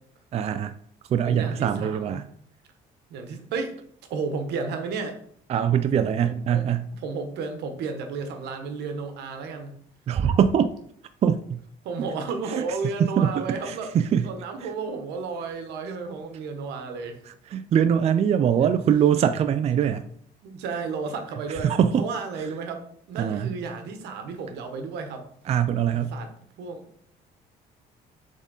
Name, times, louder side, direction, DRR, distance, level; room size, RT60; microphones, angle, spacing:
voice 1, 0.3-0.7 1.1-2.2 5.5-6.9 10.1-10.7 11.2-11.6 12.6-12.7 13.0-14.3 14.6-14.7 17.3-20.0 21.5-22.1 23.2-23.5 25.5-26.2, right 8 dB, 40° right, 0.4 m, -23 dB
voice 2, 1.3-2.2 3.1-3.8 4.1-5.2 6.2-9.8 11.8-13.9 14.2-17.2 18.6-18.7 20.4-22.8 23.1-25.3 25.9-26.3 26.6-26.9, right 4 dB, 80° right, 1.1 m, -33 dB
7.1 x 3.7 x 4.0 m
cardioid pair, 110°, 17 cm